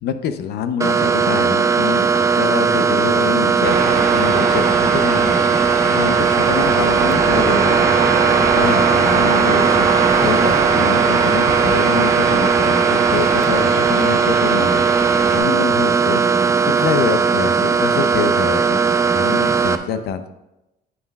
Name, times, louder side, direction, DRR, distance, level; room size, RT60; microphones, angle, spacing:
voice 1, 0.0-5.6 5.8-9.9 10.1-16.2 16.6-18.8 19.1-20.3, left 7 dB, 75° left, 10 dB, 0.7 m, -26 dB
sound 1, 0.8-19.8, right 5 dB, 20° right, 0.5 m, -17 dB
sound 2, 3.6-15.4, right 5 dB, 70° right, 1.6 m, -22 dB
9.3 x 8.6 x 2.4 m, 0.94 s
cardioid pair, 110°, 17 cm